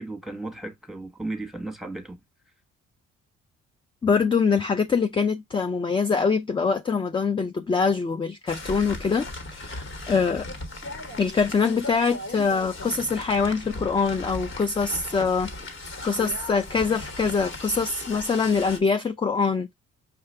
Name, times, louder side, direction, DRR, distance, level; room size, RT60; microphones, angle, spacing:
voice 1, 0.0-2.2, right 2 dB, ahead, 1.1 m, -35 dB
voice 2, 4.0-10.5 11.2-15.5 16.0-19.7, left 5 dB, 15° left, 0.3 m, -24 dB
sound 1, 8.5-18.8, left 2 dB, 40° left, 1.4 m, -37 dB
5.7 x 2.4 x 3.2 m
cardioid pair, 90°, 30 cm